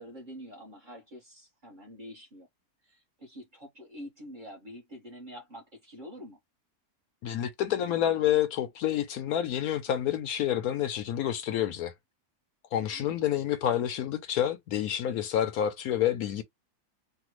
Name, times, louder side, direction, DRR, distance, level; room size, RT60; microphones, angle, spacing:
voice 1, 0.0-2.5 2.8-6.4 12.8-13.1, equal, 35° right, 1.1 m, -46 dB
voice 2, 7.2-11.9 12.7-16.4, left 11 dB, 75° left, 1.0 m, -28 dB
3.3 x 2.2 x 3.0 m
omnidirectional pair, 1.7 m